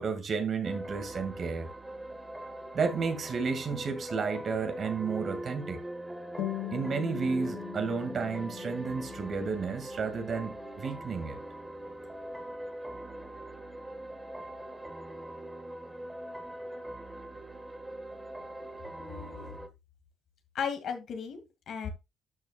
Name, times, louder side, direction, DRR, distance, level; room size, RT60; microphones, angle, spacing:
voice 1, 0.0-1.7 2.7-5.8 6.7-11.4, right 5 dB, 50° right, 2.1 m, -32 dB
sound 1, 0.6-19.7, right 1 dB, 10° right, 1.5 m, -42 dB
sound 2, 6.4-11.4, left 14 dB, 90° left, 1.9 m, -42 dB
voice 2, 19.0-19.5 20.5-21.4 21.7-21.9, left 7 dB, 65° left, 2.2 m, -35 dB
12.0 x 6.1 x 2.4 m
cardioid pair, 90°, 0 cm